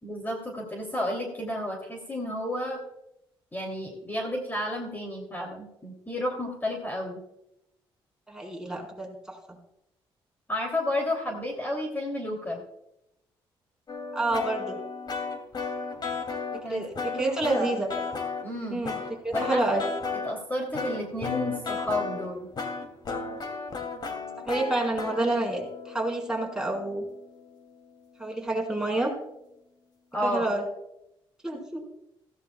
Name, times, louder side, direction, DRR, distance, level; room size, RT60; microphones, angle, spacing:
voice 1, 0.0-2.8 3.5-7.2 10.5-12.6 16.6-16.8 17.1-17.8 18.4-18.8 19.3-19.8 20.2-22.5 30.1-30.4, left 1 dB, 20° left, 1 dB, 3.0 m, -31 dB
voice 2, 8.3-9.6 14.1-14.8 16.5-17.9 18.7-19.0 19.2-19.8 24.4-27.0 28.2-29.1 30.2-30.6 31.4-31.8, right 2 dB, 5° right, -1 dB, 4.6 m, -28 dB
sound 1, 13.9-16.7 17.0-18.4 18.8-20.3 20.7-27.8, left 5 dB, 45° left, 2.7 m, -34 dB
16.0 x 15.5 x 2.3 m, 0.85 s
cardioid pair, 80°, 10 cm